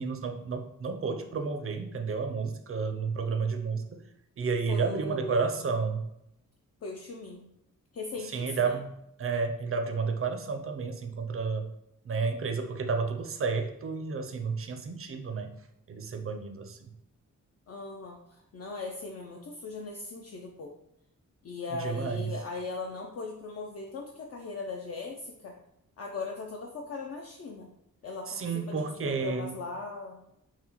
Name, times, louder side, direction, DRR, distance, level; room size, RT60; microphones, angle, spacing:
voice 1, 0.0-4.0 4.4-6.0 8.3-8.9 9.2-11.7 12.0-15.5 15.9-16.9 21.7-22.3 28.3-29.6, right 4 dB, 45° right, 7 dB, 0.4 m, -31 dB
voice 2, 4.7-5.7 6.8-7.5 7.9-8.8 17.7-20.7 21.4-25.6 26.0-27.7 28.0-30.3, left 3 dB, 50° left, 1 dB, 0.4 m, -39 dB
5.6 x 2.1 x 2.9 m, 0.83 s
wide cardioid pair, 115°, 32 cm